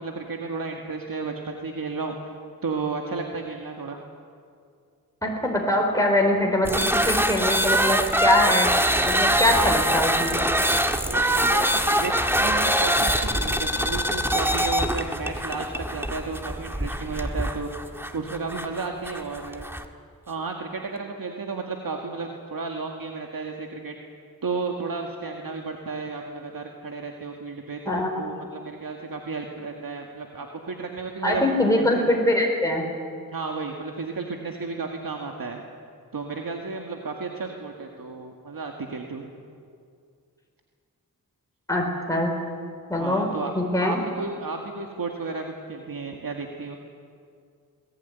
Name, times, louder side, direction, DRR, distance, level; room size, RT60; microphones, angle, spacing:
voice 1, 0.0-2.3 2.6-4.0 11.0-19.7 20.3-24.0 24.4-31.4 31.8-32.0 33.3-35.6 36.1-39.3 43.0-43.5 43.8-46.8, right 4 dB, 65° right, 2 dB, 2.0 m, -33 dB
voice 2, 5.2-8.7 9.0-10.4 27.8-28.1 31.2-32.8 41.7-42.3 42.9-43.3 43.5-44.0, left 1 dB, 10° left, 0 dB, 4.5 m, -23 dB
sound 1, 6.6-19.9, equal, 5° right, 1.7 m, -23 dB
21.0 x 19.0 x 9.4 m, 2.3 s
cardioid pair, 55°, 36 cm